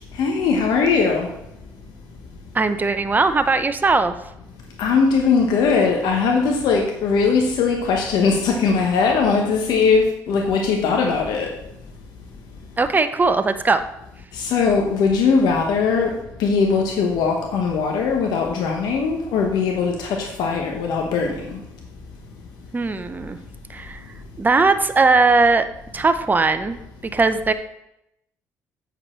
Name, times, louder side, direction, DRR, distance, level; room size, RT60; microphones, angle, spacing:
voice 1, 0.1-1.3 4.8-11.5 14.3-21.6, left 5 dB, 70° left, 2 dB, 1.0 m, -20 dB
voice 2, 2.5-4.1 12.8-13.8 22.7-23.4 23.7-24.0 24.4-25.7 25.9-26.8 27.1-27.5, right 3 dB, 25° right, 10 dB, 0.7 m, -19 dB
8.2 x 5.1 x 4.4 m, 0.84 s
supercardioid pair, 65°, 7 cm